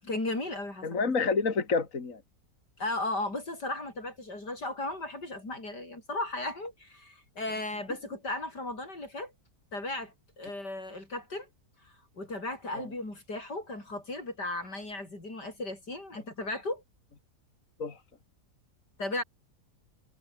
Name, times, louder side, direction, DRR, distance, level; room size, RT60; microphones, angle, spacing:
voice 1, 0.0-1.0 2.8-9.3 9.7-11.5 11.8-16.8 19.0-19.2, left 2 dB, 85° left, 8.7 m, -36 dB
voice 2, 0.8-2.2 17.8-17.9, left 4 dB, 50° left, 2.7 m, -28 dB
omnidirectional pair, 1.8 m